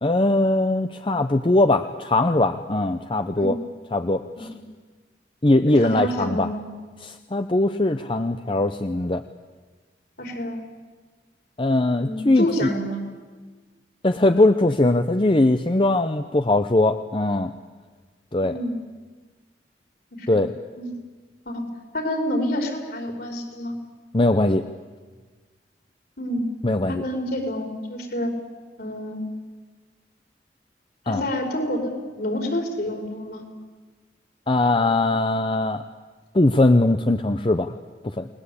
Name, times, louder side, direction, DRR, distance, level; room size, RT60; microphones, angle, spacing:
voice 1, 0.0-3.6 3.9-4.5 5.4-6.5 7.0-9.2 11.6-12.7 14.0-17.5 18.3-18.5 20.3-20.5 24.1-24.6 26.6-27.0 31.1-31.2 34.5-35.8 36.3-37.7 38.1-38.3, left 2 dB, 30° left, 8 dB, 0.7 m, -20 dB
voice 2, 5.7-6.6 10.2-10.6 12.0-13.0 18.4-18.8 20.2-20.4 20.8-20.9 21.4-21.7 21.9-23.8 26.2-26.5 26.9-28.3 28.8-29.3 31.1-33.5, equal, 60° left, 4 dB, 4.8 m, -28 dB
29.5 x 20.5 x 8.5 m, 1.4 s
head